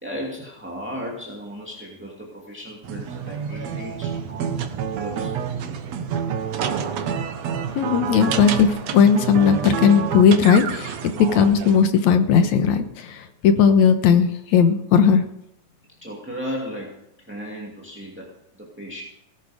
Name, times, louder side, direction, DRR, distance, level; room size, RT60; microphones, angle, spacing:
voice 1, 0.0-4.6 5.0-6.0 16.0-19.0, equal, 5° right, -2 dB, 1.7 m, -36 dB
sound 1, 2.8-11.9, right 7 dB, 65° right, 2.1 m, -28 dB
voice 2, 7.8-8.7 8.9-15.2, left 7 dB, 65° left, 8 dB, 2.3 m, -17 dB
18.5 x 11.5 x 5.1 m, 0.80 s
omnidirectional pair, 3.8 m